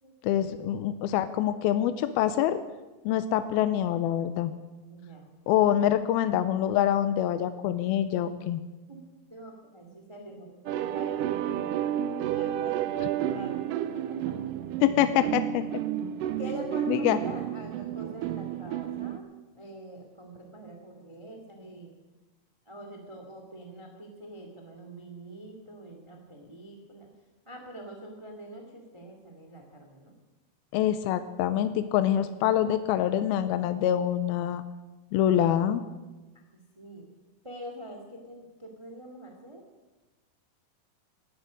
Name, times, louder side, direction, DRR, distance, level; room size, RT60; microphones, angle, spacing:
voice 1, 0.2-2.6 3.1-4.5 5.5-8.6 14.8-15.6 16.9-17.2 30.7-34.6 35.1-35.8, left 11 dB, 80° left, 11 dB, 2.5 m, -25 dB
voice 2, 4.9-5.3 8.9-9.0 9.3-11.9 12.3-14.6 16.4-19.3 19.5-21.9 22.6-27.1 27.4-30.1 36.5-37.1 37.4-39.6, right 1 dB, 15° right, 2 dB, 1.1 m, -44 dB
sound 1, 10.7-19.2, right 10 dB, 75° right, 2.0 m, -31 dB
18.5 x 14.5 x 5.2 m, 1.1 s
omnidirectional pair, 4.5 m